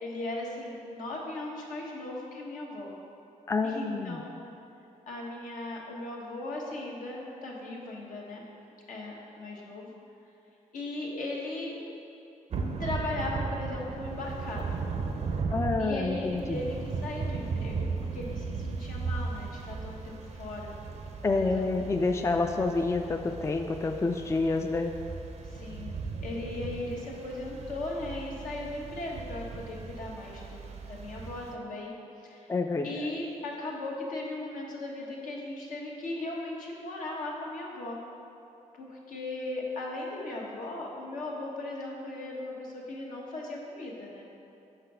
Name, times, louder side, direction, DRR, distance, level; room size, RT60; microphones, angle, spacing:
voice 1, 0.0-3.0 3.6-4.3 5.1-8.5 8.9-9.9 10.7-11.9 12.8-14.7 15.8-20.7 21.3-21.7 25.4-31.9 32.2-32.5 32.8-38.0 38.8-44.3, left 2 dB, 75° left, -3 dB, 1.1 m, -37 dB
voice 2, 3.5-4.2 15.5-16.7 21.2-24.9 32.5-32.9, left 3 dB, 20° left, 5 dB, 0.3 m, -28 dB
Thunder / Rain, 12.5-31.5, right 4 dB, 55° right, 0.6 m, -36 dB
5.7 x 4.0 x 5.5 m, 2.7 s
cardioid pair, 75°, 14 cm